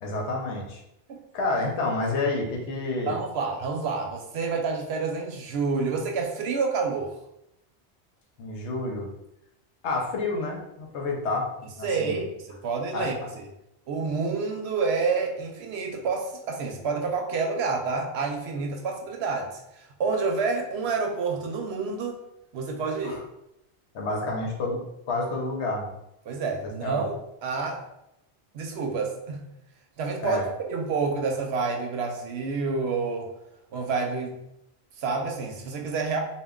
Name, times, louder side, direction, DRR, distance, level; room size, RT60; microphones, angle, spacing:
voice 1, 0.0-0.8 1.3-3.2 8.4-9.1 9.8-11.5 11.8-12.2 12.9-13.3 23.0-23.2 23.9-24.8 25.1-25.9 26.8-27.1 30.2-30.5, left 2 dB, 80° left, 1 dB, 0.9 m, -29 dB
voice 2, 3.1-7.2 11.8-13.4 13.9-22.2 22.5-23.2 26.3-27.8 28.5-29.5 30.0-33.3 33.7-34.4 35.0-36.2, right 4 dB, 70° right, 2 dB, 0.8 m, -28 dB
2.2 x 2.1 x 3.6 m, 0.84 s
omnidirectional pair, 1.1 m